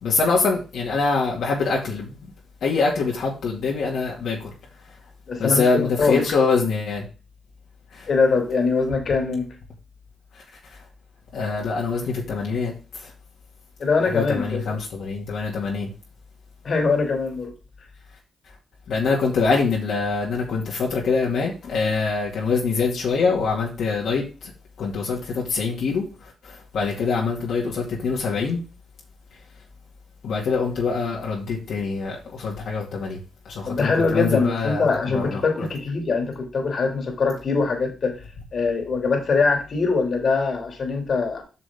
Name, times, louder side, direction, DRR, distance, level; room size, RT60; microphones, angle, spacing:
voice 1, 0.0-2.2 2.6-4.5 5.4-7.0 7.9-8.1 11.3-13.1 14.0-15.9 18.9-24.5 24.8-26.1 26.4-28.6 30.2-33.2 33.5-35.4, left 4 dB, 75° left, -3 dB, 2.1 m, -24 dB
voice 2, 5.3-6.2 8.1-9.5 13.8-14.8 16.6-17.5 33.7-38.1 38.5-41.4, left 4 dB, 55° left, 3 dB, 2.4 m, -22 dB
7.6 x 6.1 x 3.6 m, 0.32 s
cardioid pair, 75°, 0 cm